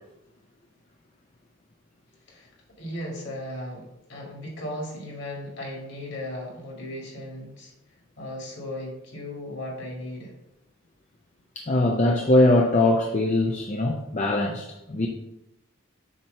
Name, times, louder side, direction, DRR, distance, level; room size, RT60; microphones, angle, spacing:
voice 1, 2.8-7.7 8.2-10.3, left 1 dB, 55° left, -1 dB, 1.9 m, -36 dB
voice 2, 11.6-15.1, left 2 dB, 35° left, 1 dB, 0.5 m, -21 dB
7.4 x 2.9 x 5.4 m, 0.88 s
head